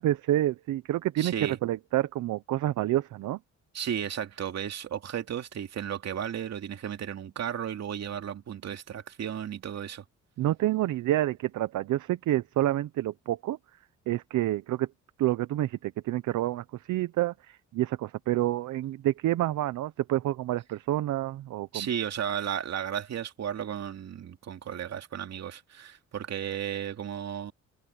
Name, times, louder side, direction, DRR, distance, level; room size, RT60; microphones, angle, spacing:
voice 1, 0.0-3.4 10.4-13.6 14.1-14.9 15.2-21.9, right 14 dB, 80° right, 0.9 m, -28 dB
voice 2, 1.2-1.6 3.7-10.0 21.7-27.5, right 9 dB, 60° right, 2.6 m, -34 dB
cardioid pair, 90°, 30 cm